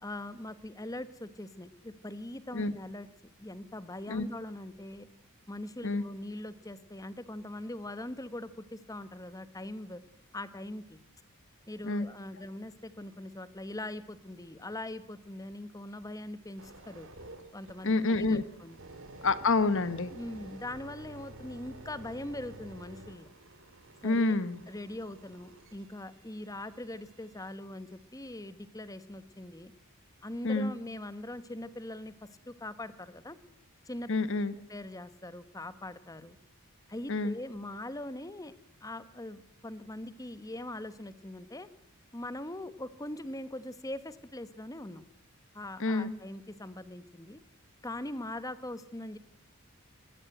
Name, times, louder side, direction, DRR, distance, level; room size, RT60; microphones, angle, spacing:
voice 1, 0.0-3.1 3.4-5.1 5.5-10.0 10.3-11.0 11.7-17.1 17.5-18.8 20.1-23.3 24.0-24.4 24.7-29.7 30.2-33.4 33.9-34.1 34.7-36.4 36.9-38.5 38.8-41.7 42.1-45.0 45.5-47.4 47.8-49.2, left 1 dB, 15° left, 14 dB, 1.1 m, -41 dB
sound 1, 16.6-27.5 28.1-28.3, right 2 dB, 60° right, 2.7 m, -51 dB
voice 2, 17.8-18.4 19.2-20.1 24.0-24.6 30.4-30.7 34.1-34.5 37.1-37.3 45.8-46.1, left 3 dB, 60° left, 14 dB, 1.1 m, -28 dB
20.5 x 17.5 x 7.8 m, 0.69 s
head